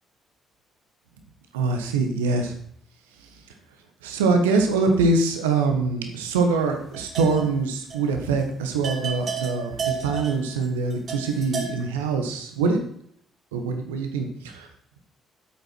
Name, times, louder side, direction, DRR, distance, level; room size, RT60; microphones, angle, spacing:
voice 1, 1.5-2.5 4.0-12.8 13.5-14.7, right 3 dB, 80° right, 5 dB, 1.3 m, -24 dB
sound 1, 6.6-7.6 7.9-8.1 8.4-8.5 8.8-11.8, right 6 dB, 45° right, 1.9 m, -32 dB
10.0 x 8.1 x 4.5 m, 0.67 s
figure-of-eight pair, 45°, 0 cm